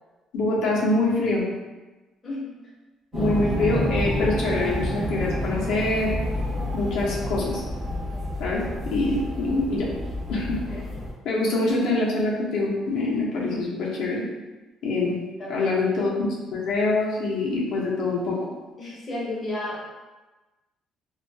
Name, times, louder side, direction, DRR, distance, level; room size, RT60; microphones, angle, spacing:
voice 1, 0.3-1.4 3.1-6.1 6.7-7.6 8.4-9.9 10.3-10.6 11.2-14.3 14.8-15.2 15.5-18.5, left 2 dB, 65° left, -5 dB, 0.5 m, -25 dB
voice 2, 2.2-2.6 15.2-15.7 18.8-19.8, left 1 dB, 20° left, -7 dB, 0.6 m, -33 dB
sound 1, 3.1-11.1, equal, 20° right, 0.6 m, -29 dB
2.6 x 2.2 x 2.6 m, 1.2 s
cardioid pair, 175°, 0 cm